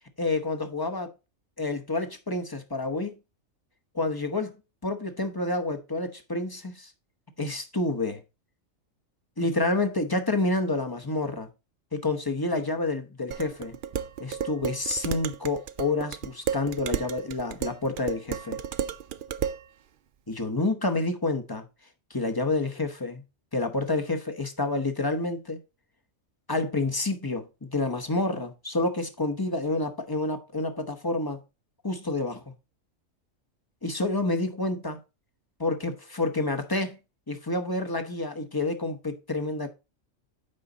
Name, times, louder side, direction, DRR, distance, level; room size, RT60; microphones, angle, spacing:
voice 1, 0.2-1.1 1.6-3.1 3.9-4.6 4.8-6.9 7.4-8.2 9.4-11.5 11.9-13.8 14.2-18.6 20.3-21.6 22.1-23.2 23.5-25.6 26.5-31.4 31.8-32.5 33.8-35.0 35.6-37.0 37.3-39.7, left 2 dB, 20° left, 0.8 m, -28 dB
Dishes pots and pans, 13.3-19.6, right 9 dB, 70° right, 0.5 m, -33 dB
8.8 x 5.2 x 3.9 m
omnidirectional pair, 1.4 m